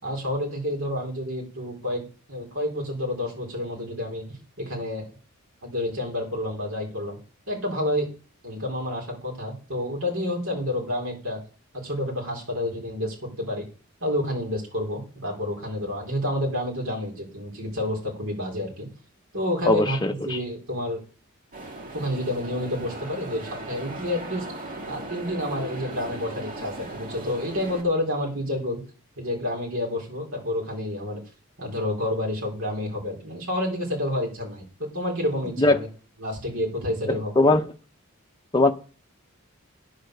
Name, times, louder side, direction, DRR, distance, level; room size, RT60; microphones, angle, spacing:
voice 1, 0.0-4.2 4.6-5.1 5.6-7.2 7.5-8.1 8.4-11.4 11.8-13.6 14.0-18.9 19.3-20.0 20.2-21.0 21.9-24.4 24.9-28.8 29.2-31.2 31.6-35.9 36.2-37.3, left 1 dB, 70° right, 4.5 m, -29 dB
voice 2, 19.7-20.4 35.6-35.8 37.1-37.6 38.5-38.7, left 2 dB, 20° left, 0.7 m, -20 dB
sound 1, 21.5-27.8, right 2 dB, 40° right, 1.9 m, -37 dB
10.0 x 6.8 x 6.7 m
head